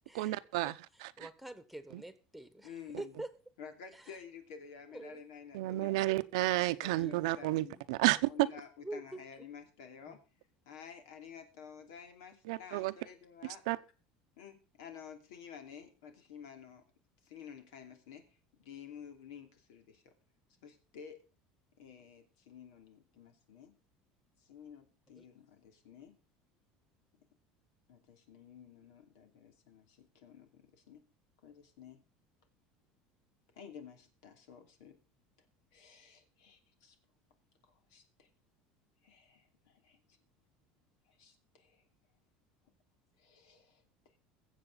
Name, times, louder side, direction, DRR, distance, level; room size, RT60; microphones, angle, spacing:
voice 1, 0.2-1.3 1.9-2.0 5.5-8.5 12.5-12.9 13.7-13.8, right 18 dB, 90° right, 0.8 m, -31 dB
voice 2, 1.2-2.7 3.0-3.3 4.9-5.2 5.6-6.2 6.9-7.1 7.6-7.8 8.8-9.2 10.1-10.2 25.2-25.3, right 1 dB, ahead, 1.3 m, -46 dB
voice 3, 2.6-3.2 3.6-6.0 6.8-7.8 8.3-10.2 10.7-13.6 14.4-16.8 17.2-18.3 18.6-20.1 20.6-21.2 21.8-23.7 24.4-26.2 27.9-31.0 31.4-32.0 33.5-35.0 35.7-37.0 37.7-38.3 39.0-40.0 41.1-41.9 43.2-44.2, left 7 dB, 90° left, 2.8 m, -52 dB
22.0 x 7.6 x 4.0 m
cardioid pair, 145°, 3 cm